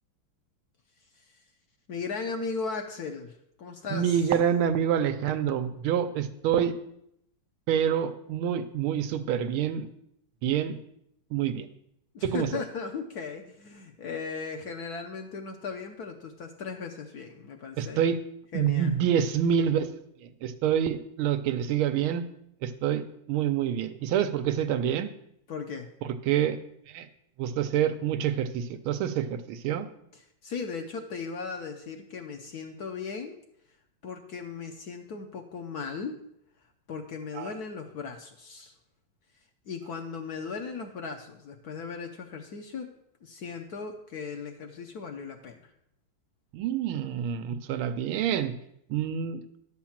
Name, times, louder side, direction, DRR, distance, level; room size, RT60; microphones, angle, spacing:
voice 1, 1.9-4.2 12.1-18.0 18.5-18.9 25.5-25.9 30.4-33.4 34.0-36.2 36.9-38.7 39.7-42.9 43.2-45.7, left 5 dB, 60° left, 3 dB, 1.1 m, -37 dB
voice 2, 3.9-6.8 7.7-9.9 10.4-10.8 11.3-11.7 12.2-12.6 17.8-18.2 18.5-19.9 20.2-22.2 22.6-25.1 26.0-26.6 26.9-27.1 27.4-29.9 37.3-37.5 46.5-48.5 48.9-49.4, right 9 dB, 85° right, 9 dB, 1.6 m, -27 dB
11.0 x 4.5 x 7.2 m, 0.76 s
omnidirectional pair, 2.3 m